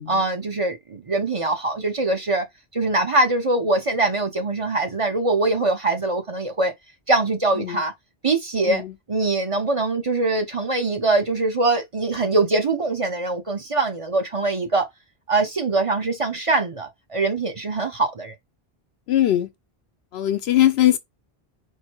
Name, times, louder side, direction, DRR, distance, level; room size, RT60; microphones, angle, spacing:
voice 1, 0.1-2.5 2.7-6.7 7.1-7.9 8.2-8.8 9.1-14.9 15.3-18.3, right 2 dB, 35° right, 0.8 m, -23 dB
voice 2, 19.1-19.5 20.1-21.0, left 13 dB, 85° left, 0.9 m, -20 dB
4.6 x 2.1 x 4.4 m
omnidirectional pair, 1.0 m